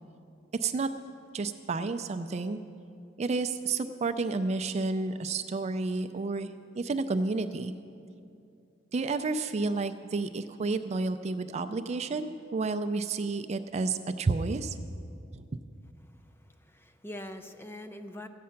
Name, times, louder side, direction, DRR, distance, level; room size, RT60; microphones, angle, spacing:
voice 1, 1.3-2.6 3.2-6.5 6.8-7.7 8.9-14.8 15.3-15.4, right 3 dB, 35° right, 10 dB, 0.4 m, -30 dB
voice 2, 16.0-18.3, left 1 dB, 10° left, 7 dB, 0.6 m, -44 dB
14.5 x 8.5 x 5.7 m, 2.5 s
head